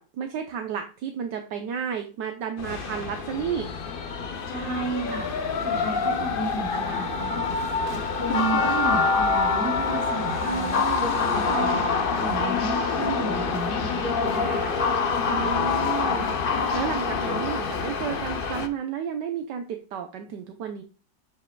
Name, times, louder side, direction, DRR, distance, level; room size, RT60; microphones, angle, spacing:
voice 1, 0.0-3.7 10.5-11.1 15.3-16.4 16.7-20.8, right 8 dB, 70° right, 5 dB, 1.4 m, -32 dB
sound 1, 2.6-18.7, left 4 dB, 45° left, 0.7 m, -26 dB
voice 2, 4.5-5.3 5.6-10.8 11.3-11.8 12.1-14.7, right 3 dB, 30° right, -6 dB, 4.3 m, -32 dB
7.9 x 7.5 x 2.3 m, 0.36 s
omnidirectional pair, 2.0 m